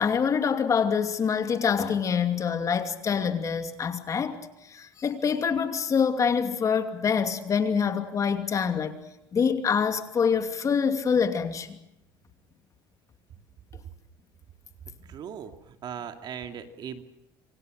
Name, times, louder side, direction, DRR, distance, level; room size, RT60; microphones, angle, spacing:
voice 1, 0.0-9.0 9.3-11.8, left 6 dB, 35° left, 2.7 m, -26 dB
voice 2, 15.1-17.0, right 8 dB, 50° right, 2.5 m, -38 dB
27.0 x 24.5 x 6.5 m
cardioid pair, 110°, 9 cm